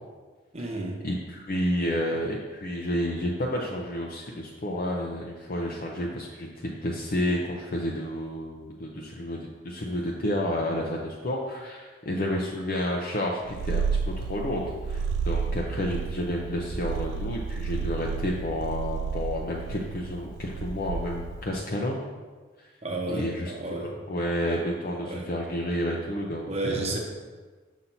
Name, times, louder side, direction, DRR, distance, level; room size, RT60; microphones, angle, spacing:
voice 1, 0.5-1.0 22.8-24.0 25.0-25.3 26.5-27.0, right 2 dB, 35° right, 0 dB, 0.9 m, -32 dB
voice 2, 1.0-22.0 23.1-26.9, left 1 dB, 50° left, -2 dB, 0.6 m, -30 dB
Purr, 13.5-21.5, right 5 dB, 70° right, 0.3 m, -31 dB
7.1 x 5.7 x 2.7 m, 1.4 s
head